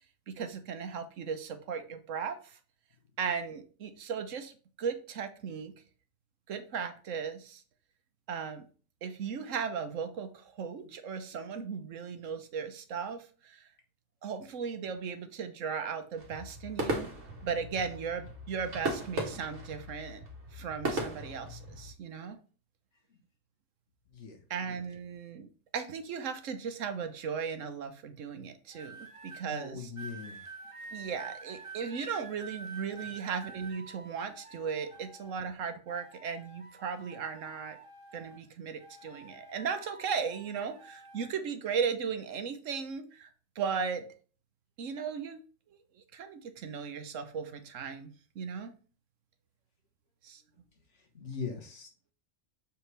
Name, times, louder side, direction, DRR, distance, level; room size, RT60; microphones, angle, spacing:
voice 1, 0.3-2.6 3.2-5.7 6.5-7.6 8.3-8.7 9.0-13.7 14.2-17.1 17.4-20.2 20.5-22.4 24.5-25.5 25.7-29.9 30.9-37.8 38.1-43.3 43.6-44.1 44.8-45.4 45.7-48.1 48.3-48.7 50.2-50.4, right 6 dB, 80° right, 9 dB, 1.2 m, -37 dB
sound 1, 16.2-21.9, right 1 dB, 65° right, 1.9 m, -37 dB
sound 2, 28.7-29.4 30.0-35.5 35.9-38.5 38.8-41.3 42.1-42.4, right 4 dB, 30° right, 1.0 m, -49 dB
voice 2, 29.5-30.4 50.9-52.1, left 5 dB, 65° left, 2 dB, 1.6 m, -41 dB
6.6 x 4.7 x 3.3 m, 0.38 s
omnidirectional pair, 1.3 m